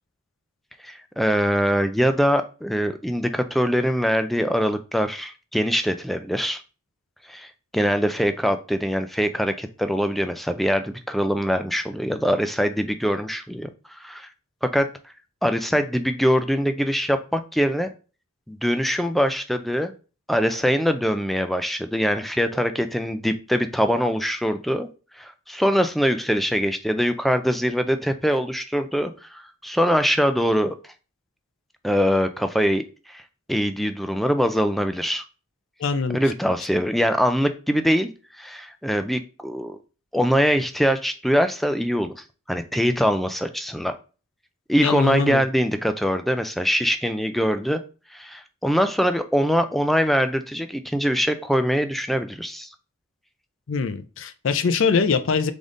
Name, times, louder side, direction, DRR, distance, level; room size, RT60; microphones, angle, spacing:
voice 1, 0.8-6.6 7.3-14.3 14.6-15.1 15.4-17.9 18.5-19.9 20.3-24.9 25.2-30.8 31.8-33.2 33.5-35.2 36.1-38.1 38.4-39.8 40.1-43.9 44.7-47.8 48.1-52.7, equal, ahead, 8 dB, 0.3 m, -23 dB
voice 2, 35.8-36.2 44.8-45.4 53.7-55.5, left 5 dB, 60° left, 10 dB, 0.4 m, -23 dB
3.9 x 3.5 x 3.7 m, 0.34 s
head